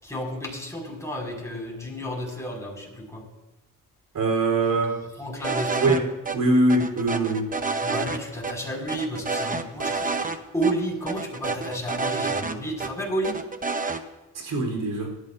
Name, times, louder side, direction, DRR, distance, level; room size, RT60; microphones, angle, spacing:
voice 1, 0.0-3.2 5.2-6.0 7.8-13.4, right 1 dB, 10° left, -3 dB, 5.8 m, -31 dB
voice 2, 4.1-5.0 5.8-7.6 14.3-15.1, right 2 dB, 70° right, 2 dB, 4.1 m, -23 dB
sound 1, 5.4-6.0 6.2-6.4 6.7-8.2 8.4-8.5 8.9-10.4 10.6-10.7 11.1-12.9 13.2-14.0, right 4 dB, 25° right, 1.0 m, -28 dB
24.0 x 14.0 x 2.7 m, 1.1 s
cardioid pair, 100°, 34 cm